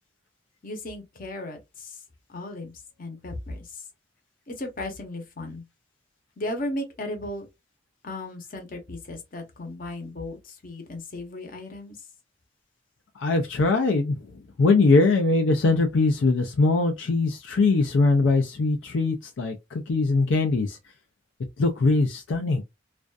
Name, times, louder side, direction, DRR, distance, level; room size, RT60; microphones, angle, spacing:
voice 1, 0.6-2.0 2.3-2.7 3.0-3.8 4.5-5.6 6.4-7.5 8.0-12.0, left 1 dB, 50° left, 0.8 m, -35 dB
voice 2, 13.2-14.2 14.6-20.8 21.6-22.6, left 3 dB, 80° left, 0.5 m, -21 dB
2.5 x 2.2 x 2.4 m
head